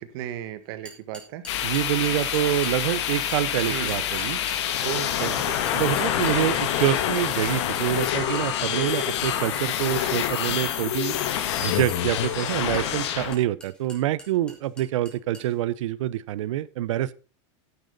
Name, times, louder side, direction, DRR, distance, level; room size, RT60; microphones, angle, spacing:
voice 1, 0.0-1.4 3.7-4.0 4.8-5.6 8.7-8.9, right 11 dB, 50° right, 11 dB, 1.4 m, -35 dB
sound 1, 0.8-2.7 3.3-15.5, equal, 5° left, 2.4 m, -45 dB
sound 2, 1.5-13.3, left 10 dB, 65° left, 1.6 m, -27 dB
voice 2, 1.6-4.4 5.2-5.3 5.7-11.2 11.6-17.2, right 13 dB, 80° right, 18 dB, 0.7 m, -26 dB
sound 3, 6.7-7.2 7.9-8.4 8.7-9.2 9.9-10.3 10.8-11.4, left 15 dB, 40° left, 0.6 m, -32 dB
10.5 x 10.0 x 4.0 m, 0.35 s
supercardioid pair, 170°, 16 cm